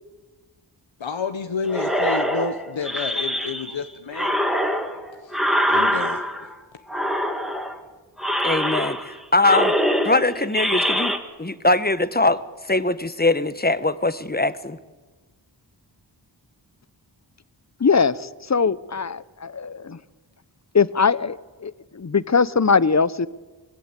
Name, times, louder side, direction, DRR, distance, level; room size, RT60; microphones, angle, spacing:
voice 1, 1.0-4.3 5.2-5.4 5.7-6.3, left 4 dB, 85° left, 1.3 m, -29 dB
sound 1, 1.7-3.8 4.1-6.5 6.9-7.8 8.2-9.2 9.4-11.2, equal, ahead, 2.8 m, -24 dB
voice 2, 8.4-9.7 10.0-12.4 12.7-14.8, left 2 dB, 20° left, 1.2 m, -21 dB
voice 3, 17.8-20.0 20.7-23.3, left 5 dB, 40° left, 0.9 m, -21 dB
25.0 x 20.5 x 8.2 m
wide cardioid pair, 55°, 44 cm